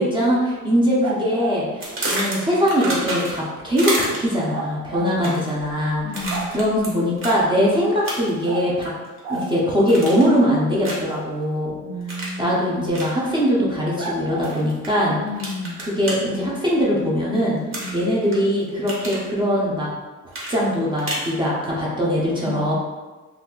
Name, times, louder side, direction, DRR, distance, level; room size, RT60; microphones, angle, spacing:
voice 1, 0.0-8.9 9.3-11.8 12.4-15.2 15.8-17.6 17.9-19.9 20.5-22.7, equal, 15° right, -6 dB, 0.5 m, -21 dB
sound 1, 1.0-1.6 4.5-5.1 5.6-5.7 6.0-6.8 8.4-8.7 9.2-9.5 12.9-13.0 14.0-14.5, right 3 dB, 80° right, 0.6 m, -31 dB
sound 2, 1.8-3.5 3.8-4.4 5.1-5.5 6.1-6.9 7.2-7.4 8.0-8.4 8.8-9.5 9.9-10.4 10.8-11.1 12.1-12.4 12.9-13.1 14.4-14.9 15.4-16.2 17.7-18.4 18.7-19.2 20.3-21.3, right 1 dB, 40° right, 0.8 m, -29 dB
voice 2, 5.0-5.5 6.0-6.5 11.8-12.7 15.2-15.8 17.7-18.0 22.4-22.7, left 2 dB, 35° left, -2 dB, 0.5 m, -31 dB
2.6 x 2.3 x 3.6 m, 1.3 s
cardioid pair, 170°, 31 cm